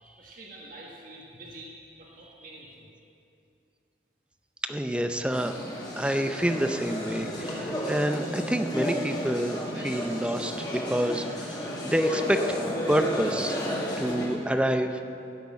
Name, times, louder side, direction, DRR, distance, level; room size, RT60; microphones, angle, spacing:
voice 1, 0.0-2.9, right 1 dB, 50° right, -3 dB, 1.6 m, -47 dB
voice 2, 4.6-5.5 6.0-12.6 12.9-13.6 14.0-14.9, equal, 5° right, 7 dB, 0.5 m, -28 dB
sound 1, 5.2-14.4, equal, 25° left, 1.9 m, -32 dB
15.0 x 6.6 x 8.3 m, 2.6 s
head